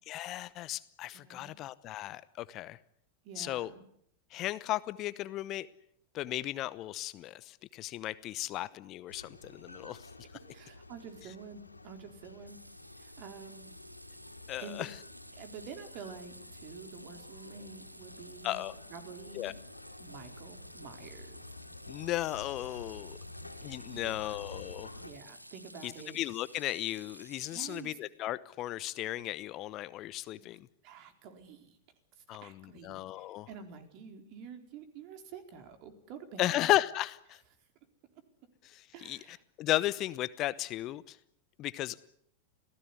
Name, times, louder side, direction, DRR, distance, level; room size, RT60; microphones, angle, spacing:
voice 1, 0.1-2.8 3.4-3.7 4.3-5.7 6.1-10.1 14.5-14.9 18.4-18.7 19.3-19.5 21.9-23.2 23.6-25.0 25.8-30.7 32.3-33.5 36.4-37.4 38.6-41.2 41.6-42.0, left 15 dB, 35° left, 17 dB, 0.9 m, -35 dB
voice 2, 1.1-1.6 3.2-3.8 10.5-12.6 13.0-13.7 14.6-14.9 15.4-19.6 20.0-21.4 23.6-24.4 25.0-26.2 27.5-28.0 30.8-31.8 32.1-36.7 38.9-39.4, right 6 dB, 45° right, 7 dB, 4.2 m, -48 dB
sound 1, 9.1-25.1, left 2 dB, 85° left, 3.6 m, -50 dB
sound 2, 12.5-27.8, equal, 90° right, 1.4 m, -53 dB
27.5 x 17.5 x 9.9 m, 0.72 s
figure-of-eight pair, 90°, 0 cm